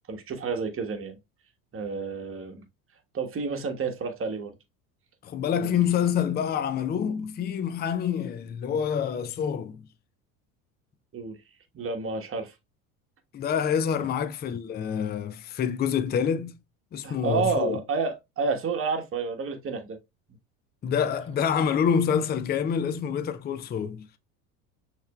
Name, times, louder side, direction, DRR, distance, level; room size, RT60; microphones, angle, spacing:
voice 1, 0.1-1.2 1.7-2.6 3.1-4.5 5.6-5.7 11.1-11.4 11.7-12.5 17.0-20.0, right 4 dB, 30° right, 1.3 m, -30 dB
voice 2, 5.2-9.8 13.3-16.6 16.9-17.8 20.8-24.1, left 8 dB, 25° left, 0.5 m, -27 dB
6.4 x 3.3 x 2.3 m
hypercardioid pair, 80°, 44 cm